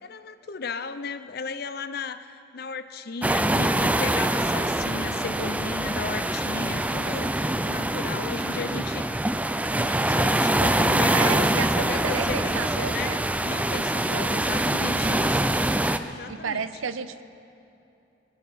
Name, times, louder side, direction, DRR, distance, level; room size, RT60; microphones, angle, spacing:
voice 1, 0.0-9.2 9.7-13.2 13.4-15.5 16.0-16.7, left 4 dB, 50° left, 12 dB, 0.6 m, -35 dB
sound 1, 3.2-16.0, right 1 dB, 5° right, 0.4 m, -24 dB
voice 2, 11.1-13.2 14.1-14.3 16.3-17.2, right 6 dB, 90° right, 12 dB, 0.7 m, -32 dB
21.5 x 11.0 x 5.8 m, 2.7 s
head